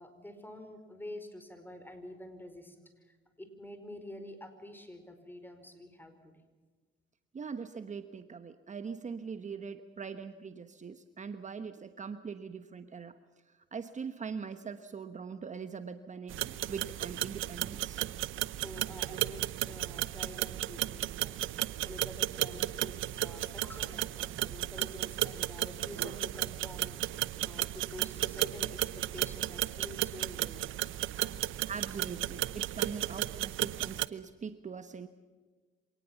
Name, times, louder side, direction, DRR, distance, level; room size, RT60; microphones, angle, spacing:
voice 1, 0.0-6.3 18.6-21.4 21.8-30.7, left 1 dB, 10° left, 8 dB, 4.8 m, -48 dB
voice 2, 7.3-13.2 13.7-18.0 19.1-19.2 31.7-35.1, right 6 dB, 35° right, 9 dB, 1.2 m, -42 dB
sound 1, 16.3-34.1, right 14 dB, 80° right, 0.7 m, -34 dB
26.0 x 19.0 x 7.1 m, 1.4 s
cardioid pair, 90°, 20 cm